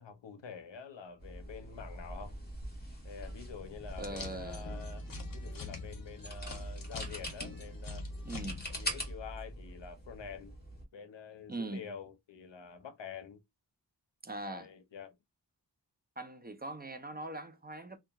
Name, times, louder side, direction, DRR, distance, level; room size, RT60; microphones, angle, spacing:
voice 1, 0.0-2.3 3.0-5.0 5.3-8.0 8.7-10.6 10.9-13.4 14.4-15.2, left 6 dB, 80° left, 0.6 m, -47 dB
sound 1, 1.2-10.8, equal, 20° left, 1.2 m, -43 dB
sound 2, 3.9-8.9, left 6 dB, 50° left, 0.8 m, -46 dB
voice 2, 4.0-4.7 5.1-5.2 8.2-8.7 11.5-11.9 14.2-14.7 16.2-18.0, right 2 dB, 25° right, 0.4 m, -41 dB
2.8 x 2.3 x 2.3 m
wide cardioid pair, 50°, 43 cm